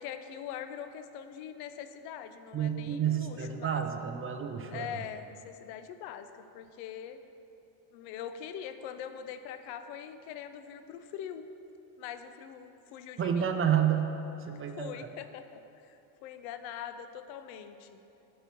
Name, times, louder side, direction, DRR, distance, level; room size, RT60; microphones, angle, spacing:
voice 1, 0.0-3.8 4.7-7.2 7.9-11.5 12.0-13.5 14.5-18.0, left 9 dB, 90° left, 9 dB, 0.6 m, -43 dB
voice 2, 2.5-4.9 13.2-14.2 14.5-15.0, right 9 dB, 30° right, 6 dB, 0.4 m, -29 dB
7.0 x 4.3 x 5.9 m, 2.9 s
supercardioid pair, 95°, 49 cm